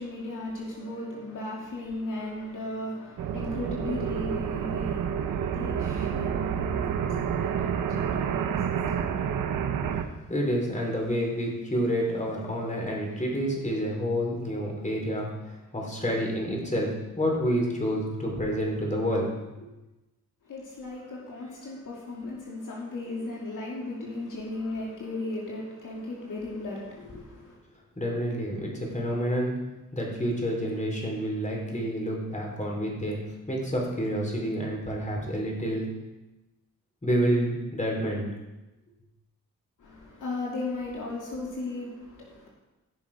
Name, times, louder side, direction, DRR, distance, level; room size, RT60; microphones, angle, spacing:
voice 1, 0.0-9.4 20.4-27.6 39.8-42.5, left 2 dB, 75° left, -4 dB, 2.6 m, -36 dB
sound 1, 3.2-10.1, right 8 dB, 85° right, 0.9 m, -29 dB
voice 2, 10.3-16.9 17.1-19.3 19.6-19.7 28.0-29.6 29.9-33.2 33.5-35.9 37.0-38.3, equal, 25° left, -2 dB, 4.4 m, -28 dB
15.5 x 6.3 x 5.2 m, 1.0 s
cardioid pair, 65°, 32 cm